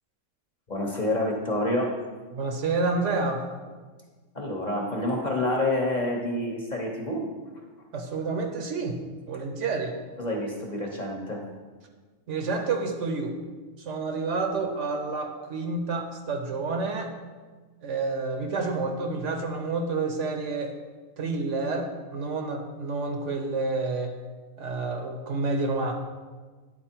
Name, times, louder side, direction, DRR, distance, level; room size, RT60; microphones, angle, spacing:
voice 1, 0.7-2.0 4.3-7.2 10.2-11.4, left 1 dB, 35° left, -1 dB, 0.9 m, -28 dB
voice 2, 2.3-3.4 7.9-9.0 9.3-9.9 12.3-13.4 13.8-17.1 17.8-20.7 21.2-24.1 24.6-25.9, right 3 dB, 65° right, 4 dB, 1.0 m, -29 dB
9.7 x 4.1 x 4.4 m, 1.4 s
omnidirectional pair, 1.4 m